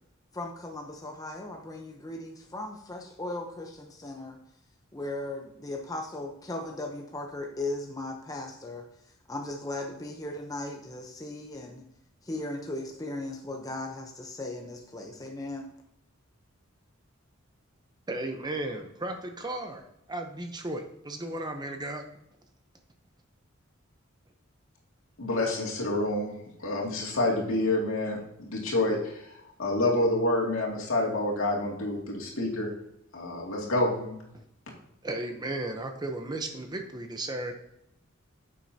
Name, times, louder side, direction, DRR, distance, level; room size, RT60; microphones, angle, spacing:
voice 1, 0.3-4.4 4.9-8.8 9.3-11.8 12.2-15.7, left 2 dB, 15° left, 1 dB, 0.8 m, -37 dB
voice 2, 18.1-19.8 20.1-22.0 35.0-37.5, right 2 dB, 20° right, 5 dB, 0.8 m, -35 dB
voice 3, 25.2-26.3 26.6-29.3 29.6-32.7 33.1-34.1, left 2 dB, 70° left, -2 dB, 2.4 m, -28 dB
9.7 x 7.4 x 2.8 m, 0.78 s
head